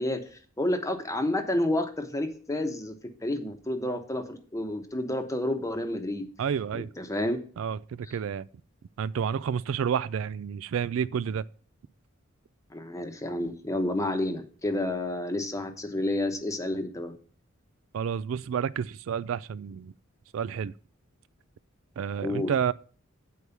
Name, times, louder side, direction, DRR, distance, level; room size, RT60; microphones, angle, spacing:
voice 1, 0.0-2.9 3.2-6.3 6.7-7.4 12.7-17.1 22.2-22.5, left 1 dB, 15° left, 1.0 m, -30 dB
voice 2, 6.4-6.9 7.6-8.5 9.0-11.4 17.9-19.9 20.3-20.7 22.0-22.7, right 7 dB, 75° right, 0.3 m, -30 dB
8.2 x 4.7 x 6.9 m
head